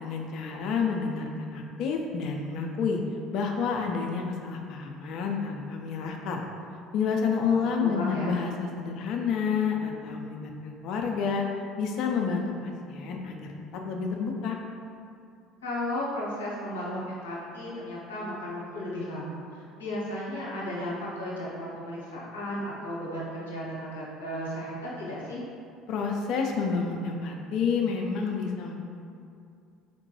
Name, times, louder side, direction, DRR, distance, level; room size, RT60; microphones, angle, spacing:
voice 1, 0.0-3.0 3.3-6.4 6.9-11.4 11.8-14.6 25.9-28.8, left 5 dB, 55° left, 1 dB, 0.4 m, -29 dB
voice 2, 7.4-8.4 15.6-25.4, left 1 dB, 75° left, -7 dB, 0.7 m, -35 dB
4.6 x 2.2 x 2.8 m, 2.4 s
figure-of-eight pair, 60°, 0 cm